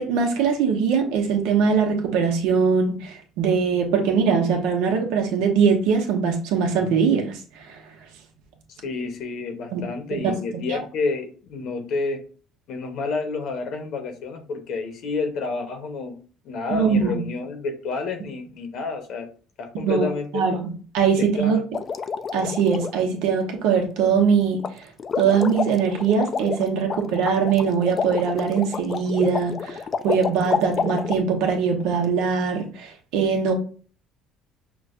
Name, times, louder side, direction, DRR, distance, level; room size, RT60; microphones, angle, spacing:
voice 1, 0.0-7.8 9.7-9.8 10.1-10.8 16.7-17.3 19.8-21.6 22.3-24.6 25.2-33.5, right 6 dB, 85° right, 2 dB, 0.9 m, -22 dB
voice 2, 8.8-12.2 12.7-16.2 16.4-19.3 19.6-20.4 21.2-21.6, left 4 dB, 65° left, 5 dB, 0.9 m, -29 dB
sound 1, 21.7-22.9 24.6-24.7 25.0-31.2, left 5 dB, 35° left, 0.3 m, -29 dB
5.9 x 2.3 x 2.5 m, 0.40 s
cardioid pair, 110°, 0 cm